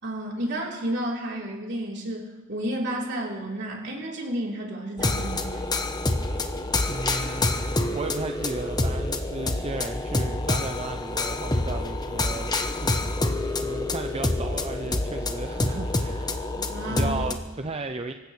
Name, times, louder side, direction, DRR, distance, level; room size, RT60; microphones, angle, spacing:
voice 1, 0.0-5.7 16.7-17.2, right 1 dB, 60° right, -3 dB, 3.8 m, -31 dB
sound 1, 5.0-17.3, left 2 dB, 20° left, 1.0 m, -27 dB
voice 2, 6.9-16.5 16.9-18.1, right 2 dB, 30° right, 6 dB, 0.6 m, -35 dB
25.0 x 15.5 x 3.3 m, 1.3 s
head